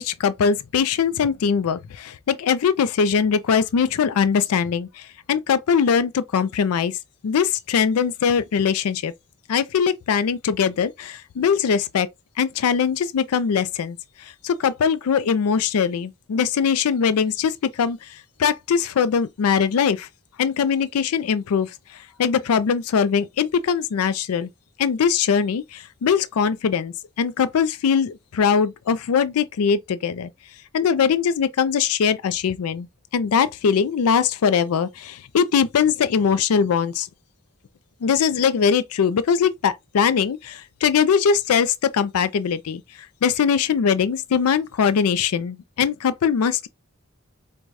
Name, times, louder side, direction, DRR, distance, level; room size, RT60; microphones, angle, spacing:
voice 1, 0.0-7.0 7.2-9.1 9.5-12.1 12.4-20.1 20.4-21.7 22.2-24.5 24.8-30.3 30.7-32.9 33.1-37.1 38.0-42.8 43.2-46.7, left 6 dB, 75° left, 0.4 m, -21 dB
4.6 x 2.2 x 2.5 m
head